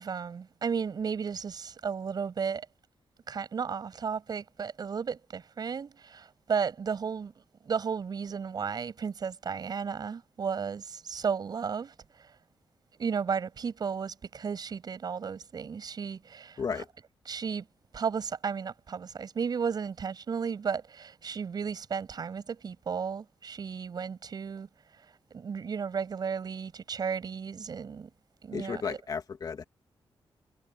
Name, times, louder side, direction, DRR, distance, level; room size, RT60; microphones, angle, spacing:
voice 1, 0.0-2.7 3.3-7.3 7.6-11.9 12.2-12.3 13.0-16.6 17.3-17.7 17.9-24.7 25.3-28.1 28.4-29.0, right 6 dB, 50° right, 8.0 m, -34 dB
voice 2, 28.5-29.6, left 5 dB, 45° left, 2.5 m, -34 dB
wide cardioid pair, 175°, 9 cm